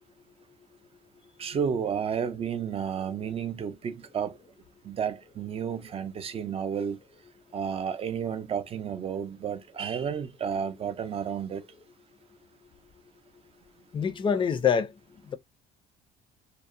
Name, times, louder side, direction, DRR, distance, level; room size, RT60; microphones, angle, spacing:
voice 1, 1.4-4.4 4.8-7.0 7.5-11.6, right 7 dB, 35° right, 0.4 m, -31 dB
voice 2, 13.9-14.9, left 7 dB, 30° left, 0.4 m, -25 dB
2.6 x 2.0 x 2.4 m
cardioid pair, 110°, 17 cm